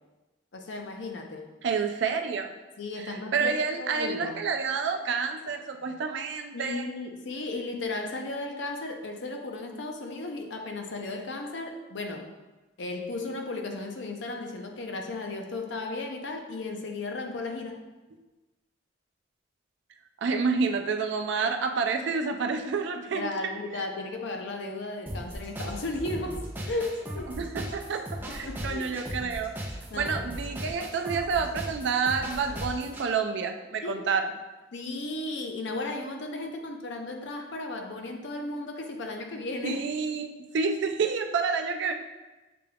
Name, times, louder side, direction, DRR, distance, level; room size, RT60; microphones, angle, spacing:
voice 1, 0.5-1.5 2.8-4.4 6.5-12.3 12.8-17.8 23.0-27.4 28.2-29.0 29.9-30.2 33.8-34.2 34.7-39.8, left 2 dB, 70° left, 3 dB, 0.6 m, -35 dB
voice 2, 1.6-2.5 3.3-6.9 20.2-23.4 27.4-29.5 29.9-34.3 39.6-41.9, right 5 dB, 65° right, 5 dB, 0.4 m, -29 dB
sound 1, 25.1-33.1, equal, 10° right, 0.5 m, -37 dB
6.8 x 2.3 x 3.4 m, 1.1 s
head